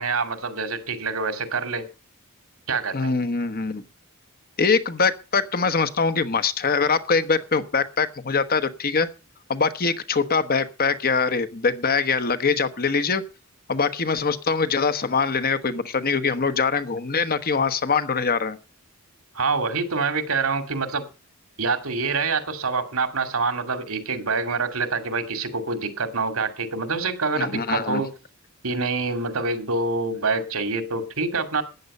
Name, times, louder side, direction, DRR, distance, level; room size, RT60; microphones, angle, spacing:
voice 1, 0.0-1.8 2.7-3.2 19.3-21.1 21.6-28.1 28.6-31.6, right 4 dB, 75° right, 2.4 m, -26 dB
voice 2, 2.9-3.8 4.6-9.1 9.5-13.2 13.7-18.6 27.4-28.0, left 5 dB, 45° left, 1.1 m, -23 dB
13.5 x 9.5 x 5.4 m
head